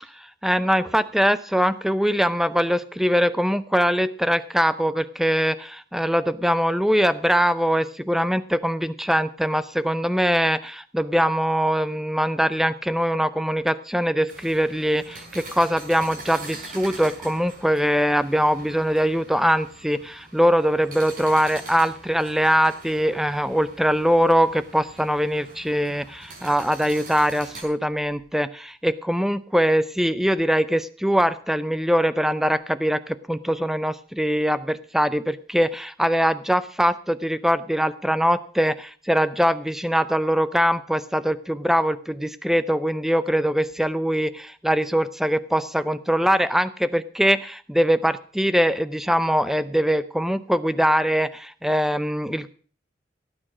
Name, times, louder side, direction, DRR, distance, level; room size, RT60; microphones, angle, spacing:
voice 1, 0.2-52.5, equal, ahead, 14 dB, 0.5 m, -22 dB
sound 1, 14.3-27.6, right 2 dB, 45° right, 5.0 m, -43 dB
16.5 x 9.0 x 6.1 m, 0.43 s
head